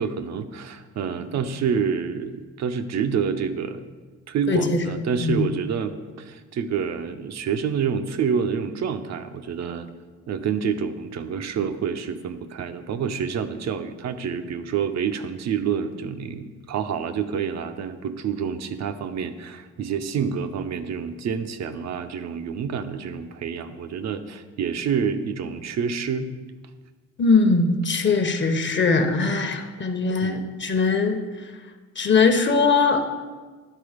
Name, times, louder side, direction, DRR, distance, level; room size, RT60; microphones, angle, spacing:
voice 1, 0.0-3.8 4.3-9.9 10.3-26.3 30.2-30.5, right 7 dB, 60° right, 9 dB, 0.7 m, -28 dB
voice 2, 4.5-4.8 5.2-5.4 27.2-31.2 32.0-33.0, left 4 dB, 40° left, 6 dB, 0.9 m, -21 dB
11.0 x 3.9 x 5.0 m, 1.4 s
cardioid pair, 90°, 30 cm